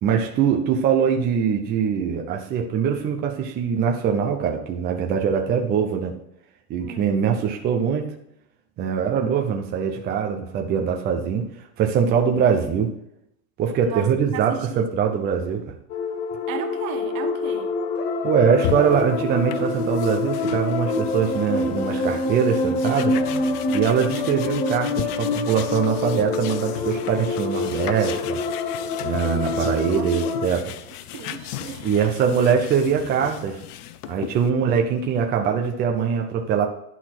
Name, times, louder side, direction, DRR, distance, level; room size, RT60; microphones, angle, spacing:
voice 1, 0.0-6.1 6.7-8.1 8.8-11.4 11.8-12.9 13.6-15.7 18.2-23.2 23.7-28.4 29.0-30.7 31.8-33.6 34.1-36.7, right 7 dB, 20° right, 2 dB, 0.7 m, -22 dB
voice 2, 6.8-7.2 13.8-15.2 16.5-17.7 29.9-30.1 31.1-31.9 34.5-34.6, right 8 dB, 60° right, 7 dB, 1.3 m, -35 dB
sound 1, 15.9-30.5, left 3 dB, 20° left, 0.3 m, -26 dB
sound 2, 18.6-34.5, left 12 dB, 80° left, 0.8 m, -36 dB
11.5 x 4.2 x 6.0 m, 0.78 s
supercardioid pair, 155°, 45 cm